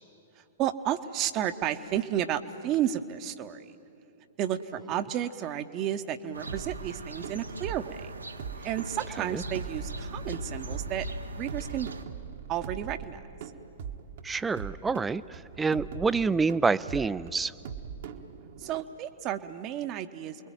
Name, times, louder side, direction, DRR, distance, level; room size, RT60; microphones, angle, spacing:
voice 1, 0.4-3.8 4.4-8.1 8.6-11.1 11.4-11.9 12.5-13.2 18.6-20.5, right 11 dB, 35° right, 9 dB, 1.1 m, -32 dB
sound 1, 6.3-12.0, right 1 dB, 80° right, 1.4 m, -40 dB
sound 2, 6.5-18.8, right 7 dB, 55° right, 1.4 m, -42 dB
voice 2, 14.2-17.5, right 4 dB, 10° right, 17 dB, 0.6 m, -27 dB
29.5 x 22.0 x 9.1 m, 2.8 s
figure-of-eight pair, 105°, 0 cm